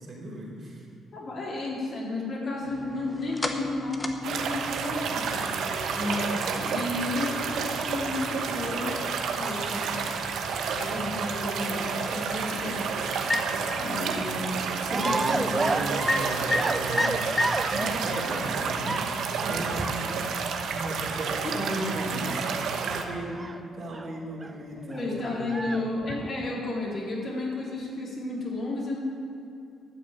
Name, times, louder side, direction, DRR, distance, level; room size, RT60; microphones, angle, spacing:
voice 1, 0.1-0.9 14.3-14.5 14.8-22.4 22.8-25.6, right 1 dB, 50° right, -2 dB, 2.9 m, -35 dB
voice 2, 1.1-9.1 9.3-10.1 10.7-12.8 13.8-15.7 21.4-21.6 24.9-29.0, left 2 dB, 50° left, -4 dB, 3.7 m, -33 dB
sound 1, 2.6-19.0, left 2 dB, 20° left, 1.1 m, -36 dB
sound 2, 4.2-23.0, right 5 dB, 75° right, 1.1 m, -30 dB
sound 3, 14.9-18.6 18.8-24.1 24.4-24.5 24.8-26.7, right 3 dB, 20° right, 0.4 m, -33 dB
12.0 x 6.3 x 9.0 m, 2.6 s
cardioid pair, 90°, 0 cm